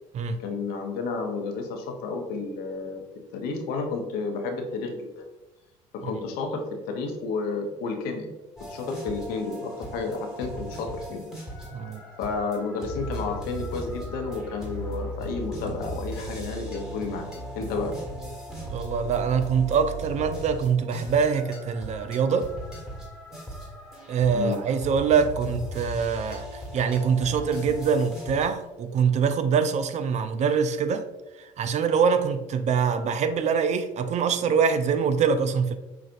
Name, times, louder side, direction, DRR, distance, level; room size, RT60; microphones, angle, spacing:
voice 1, 0.4-3.0 3.3-5.2 5.9-8.3 8.7-11.3 12.2-17.3 17.5-17.9 24.3-24.6, left 4 dB, 70° left, 3 dB, 0.8 m, -31 dB
sound 1, 8.6-28.5, right 1 dB, 5° right, 1.4 m, -38 dB
voice 2, 11.7-12.0 18.7-22.5 24.1-31.1 31.4-35.8, right 6 dB, 45° right, 10 dB, 0.4 m, -24 dB
5.8 x 2.5 x 2.5 m, 1.0 s
hypercardioid pair, 70°, 16 cm